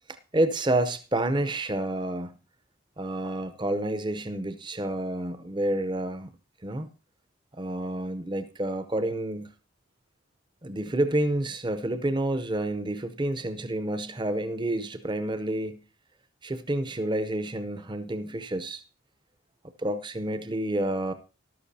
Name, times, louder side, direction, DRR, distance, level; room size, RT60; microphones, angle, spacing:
voice 1, 0.3-2.3 3.0-6.3 6.6-6.9 7.6-9.5 10.6-15.8 16.4-18.8 19.8-21.1, right 1 dB, 20° right, 0.6 m, -29 dB
13.5 x 12.0 x 2.7 m
head